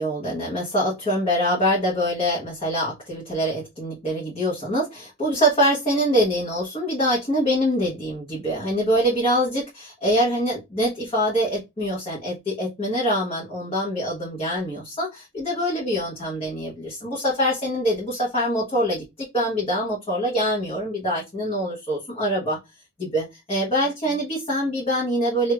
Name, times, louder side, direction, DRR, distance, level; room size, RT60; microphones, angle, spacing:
voice 1, 0.0-19.0 19.3-22.6 23.0-25.5, equal, 25° left, -5 dB, 1.1 m, -24 dB
4.6 x 2.7 x 2.3 m, 0.22 s
head